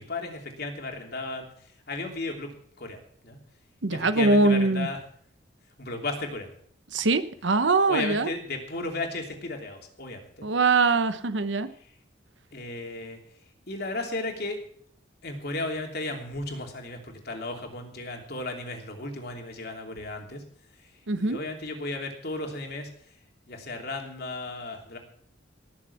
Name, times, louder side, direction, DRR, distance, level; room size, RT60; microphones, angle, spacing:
voice 1, 0.0-3.4 3.9-5.0 5.8-6.5 7.9-10.4 12.5-13.2 13.7-14.6 15.2-20.4 20.8-22.9 23.5-25.0, left 2 dB, 55° left, 2 dB, 3.0 m, -35 dB
voice 2, 3.8-4.9 6.9-8.3 10.4-11.7 21.1-21.4, right 3 dB, 65° right, 12 dB, 0.9 m, -22 dB
19.0 x 7.2 x 7.2 m, 0.62 s
head